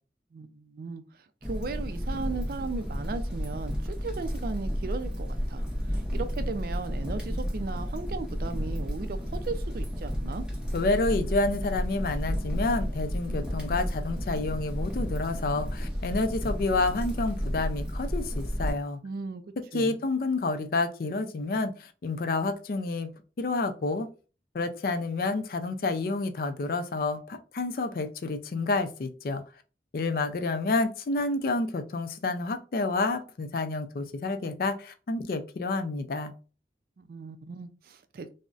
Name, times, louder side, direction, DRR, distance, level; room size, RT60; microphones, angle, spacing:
voice 1, 0.3-10.4 19.0-19.4 19.7-20.0 37.0-38.3, right 4 dB, 55° right, 0.3 m, -37 dB
sound 1, 1.4-18.7, equal, 5° right, 0.6 m, -32 dB
voice 2, 10.7-19.0 19.7-24.1 24.5-29.4 29.9-36.3, left 3 dB, 50° left, 0.4 m, -29 dB
3.8 x 2.0 x 2.3 m
head